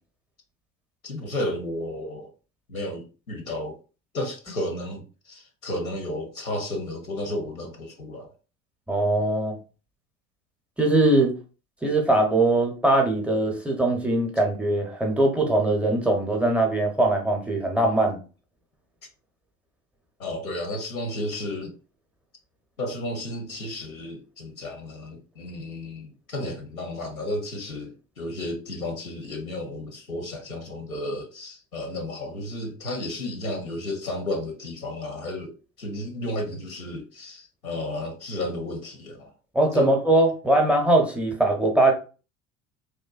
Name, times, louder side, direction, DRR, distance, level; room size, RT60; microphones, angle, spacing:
voice 1, 1.0-2.3 2.7-3.8 4.1-8.3 20.2-21.8 22.8-35.5 35.8-39.3 39.7-39.9, left 1 dB, 85° left, 0.6 m, -33 dB
voice 2, 8.9-9.5 10.8-11.3 11.8-18.2 39.5-41.9, right 2 dB, 5° right, 0.5 m, -21 dB
2.6 x 2.1 x 2.3 m
figure-of-eight pair, 65°, 41 cm